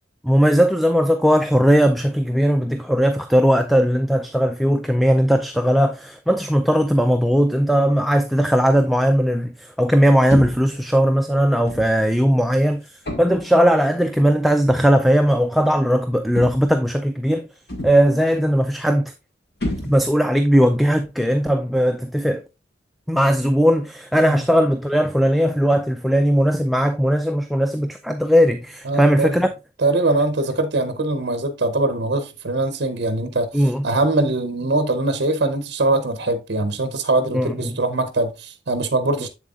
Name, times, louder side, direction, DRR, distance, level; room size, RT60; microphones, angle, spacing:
voice 1, 0.2-17.5 17.8-19.1 19.8-22.4 23.1-29.5 33.5-33.8 37.3-37.8, equal, ahead, 0.3 m, -18 dB
sound 1, 10.3-10.8 11.7-12.0 13.0-13.5 14.7-14.9 16.3-16.8 17.7-18.2 19.6-20.3, left 1 dB, 60° left, 1.5 m, -30 dB
voice 2, 28.8-29.4 29.8-39.3, right 2 dB, 65° right, 0.7 m, -22 dB
7.3 x 7.2 x 2.4 m
head